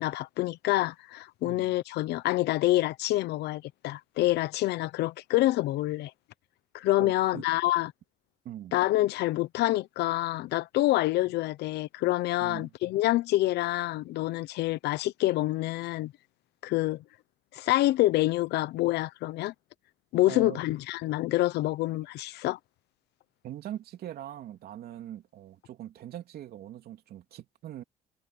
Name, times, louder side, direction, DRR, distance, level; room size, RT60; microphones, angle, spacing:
voice 1, 0.0-6.1 6.7-7.9 8.7-16.1 16.6-17.0 17.5-19.5 20.1-22.6, left 17 dB, 80° left, 0.9 m, -27 dB
voice 2, 7.0-7.5 8.4-8.7 12.4-12.7 20.3-20.6 23.4-27.8, right 12 dB, 65° right, 3.2 m, -42 dB
cardioid pair, 110°, 17 cm